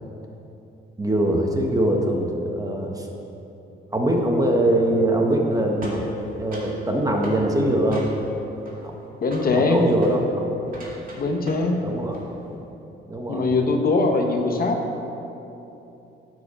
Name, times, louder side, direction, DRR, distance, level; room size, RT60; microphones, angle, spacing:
voice 1, 1.0-3.1 3.9-6.0 6.4-8.1 8.8-8.9 9.5-10.2 11.8-12.1 13.1-13.5, right 1 dB, 20° right, 1 dB, 1.3 m, -22 dB
sound 1, 5.8-6.8 7.2-7.4 7.9-8.4 8.6-9.1 9.3-9.6 9.9-10.2 10.7-11.8 12.0-12.3, right 1 dB, 45° right, 2.4 m, -40 dB
voice 2, 9.2-9.8 11.1-11.8 13.3-14.8, left 3 dB, 50° left, 4 dB, 0.9 m, -21 dB
9.6 x 4.9 x 7.0 m, 3.0 s
cardioid pair, 90°, 20 cm